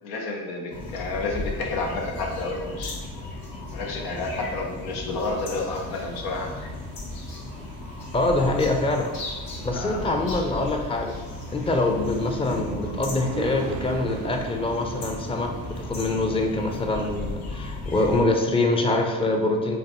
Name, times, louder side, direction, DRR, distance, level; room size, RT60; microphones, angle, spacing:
voice 1, 0.0-3.0 3.7-6.7 8.5-8.7 9.5-10.3, left 3 dB, 90° left, 0 dB, 0.8 m, -31 dB
sound 1, 0.7-18.2, left 2 dB, 70° left, 1.1 m, -36 dB
sound 2, 1.5-17.3, right 6 dB, 65° right, 0.5 m, -41 dB
voice 2, 8.1-9.1 9.6-11.1 11.5-19.8, left 2 dB, 15° left, 3 dB, 0.5 m, -24 dB
5.1 x 2.2 x 2.9 m, 1.3 s
supercardioid pair, 75°, 37 cm